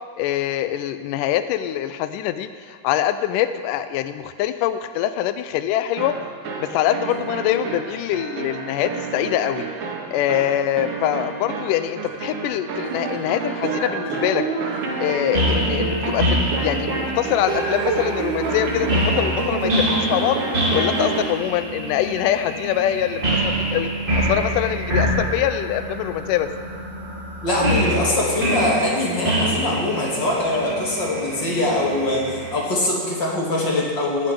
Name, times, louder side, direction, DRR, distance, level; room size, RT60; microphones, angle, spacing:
voice 1, 0.2-6.2 6.6-9.7 10.1-14.5 15.0-20.4 20.7-23.2 23.7-23.9 24.2-26.5, left 11 dB, 80° left, 10 dB, 2.2 m, -24 dB
sound 1, 6.0-21.4, right 4 dB, 70° right, 3.4 m, -28 dB
sound 2, 15.3-32.6, equal, 20° right, 1.6 m, -25 dB
voice 2, 27.4-34.3, left 1 dB, 35° left, -4 dB, 3.3 m, -22 dB
14.5 x 7.6 x 9.8 m, 2.1 s
omnidirectional pair, 3.8 m